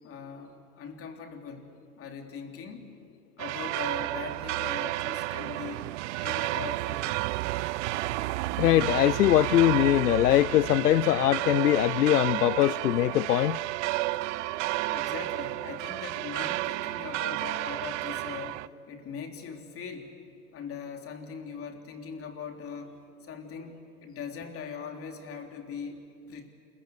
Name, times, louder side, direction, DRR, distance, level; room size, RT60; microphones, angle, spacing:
voice 1, 0.0-2.9 3.4-7.2 14.9-20.1 20.5-26.5, left 6 dB, 30° left, 3.3 m, -41 dB
sound 1, 3.4-18.7, right 18 dB, 50° right, 0.6 m, -31 dB
voice 2, 8.6-13.6, left 13 dB, 85° left, 0.6 m, -22 dB
28.0 x 22.0 x 8.1 m
hypercardioid pair, 110°, 46 cm